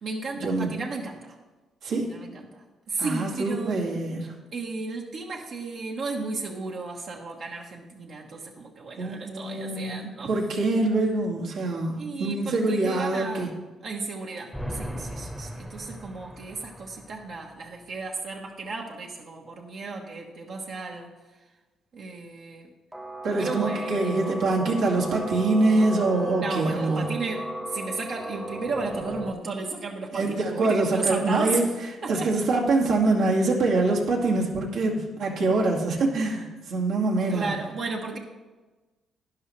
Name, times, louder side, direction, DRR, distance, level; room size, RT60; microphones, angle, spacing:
voice 1, 0.0-1.3 1.9-3.8 4.5-10.3 12.0-13.5 13.8-21.1 21.9-22.7 23.4-24.4 26.4-31.6 32.0-32.3 37.3-38.2, right 3 dB, 65° right, -1 dB, 1.3 m, -34 dB
voice 2, 3.0-4.3 9.0-13.5 23.2-27.0 30.1-31.7 32.1-37.5, right 2 dB, 80° right, -2 dB, 2.2 m, -25 dB
sound 1, 14.5-17.4 22.9-29.3, right 1 dB, 5° right, 1.0 m, -36 dB
12.0 x 10.5 x 3.2 m, 1.2 s
cardioid pair, 90°, 0 cm